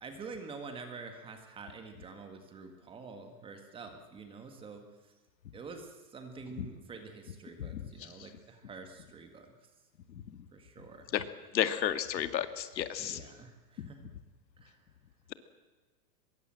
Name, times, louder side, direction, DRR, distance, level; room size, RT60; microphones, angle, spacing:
voice 1, 0.0-4.8 5.5-9.5 10.5-11.1 13.0-14.1 14.6-14.8, right 4 dB, 10° right, 6 dB, 1.7 m, -47 dB
voice 2, 7.6-8.1 11.1-11.2 11.5-13.2 13.8-13.9, left 10 dB, 85° left, 10 dB, 2.2 m, -32 dB
24.0 x 22.5 x 7.6 m, 1.3 s
supercardioid pair, 170°, 50 cm